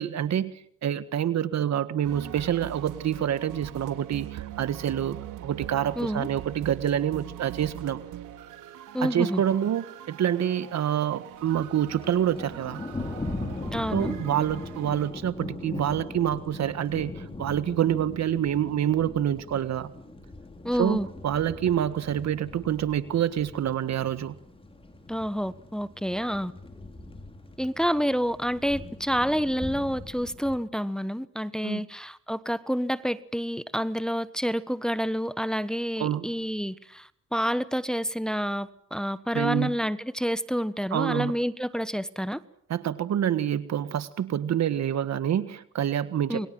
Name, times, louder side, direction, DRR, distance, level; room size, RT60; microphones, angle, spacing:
voice 1, 0.0-5.2 5.4-8.0 9.0-12.8 13.9-19.9 20.8-24.3 31.6-31.8 36.0-36.3 39.3-39.7 40.9-41.3 42.7-46.5, right 10 dB, 60° right, 13 dB, 1.6 m, -27 dB
sound 1, 2.0-15.1, right 12 dB, 90° right, 3.4 m, -42 dB
voice 2, 6.0-6.3 8.9-9.4 13.7-14.1 20.6-21.1 25.1-26.5 27.6-42.4 46.3-46.5, equal, ahead, 14 dB, 1.3 m, -28 dB
Thunder, 11.4-30.6, left 2 dB, 20° left, 5.7 m, -40 dB
28.5 x 22.5 x 7.7 m, 0.64 s
cardioid pair, 90°, 30 cm